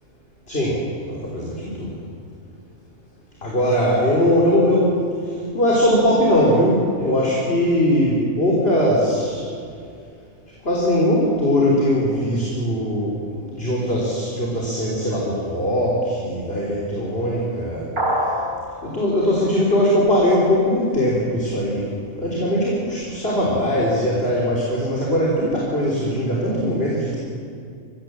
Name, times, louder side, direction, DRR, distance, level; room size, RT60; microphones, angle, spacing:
voice 1, 0.5-0.8 1.1-2.0 3.4-5.0 5.5-9.5 10.6-17.9 18.8-21.9 22.2-27.2, equal, 40° left, -4 dB, 3.8 m, -20 dB
sound 1, 18.0-18.5, equal, 90° right, 5.8 m, -22 dB
23.0 x 16.5 x 7.7 m, 2.4 s
omnidirectional pair, 1.5 m